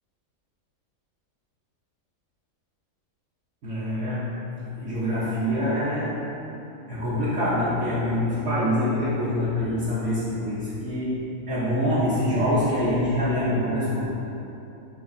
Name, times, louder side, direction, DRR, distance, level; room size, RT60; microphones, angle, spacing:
voice 1, 3.6-6.3 6.9-14.1, left 1 dB, 60° right, -10 dB, 1.0 m, -25 dB
5.9 x 3.0 x 2.5 m, 2.9 s
omnidirectional pair, 1.5 m